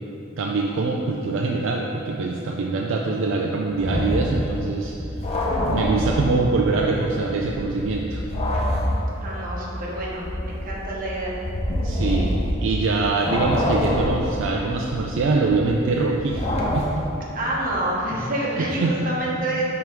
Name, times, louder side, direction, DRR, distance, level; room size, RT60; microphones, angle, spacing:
voice 1, 0.4-4.9 5.7-8.2 11.8-16.5 16.7-17.1 18.6-19.0, right 3 dB, 65° right, 0 dB, 0.3 m, -24 dB
sound 1, 3.7-6.8 7.1-12.9 13.2-17.3, left 1 dB, 30° left, 0.7 m, -26 dB
voice 2, 9.2-11.3 17.3-19.6, right 1 dB, 45° right, -4 dB, 1.0 m, -27 dB
6.1 x 3.5 x 4.4 m, 2.8 s
head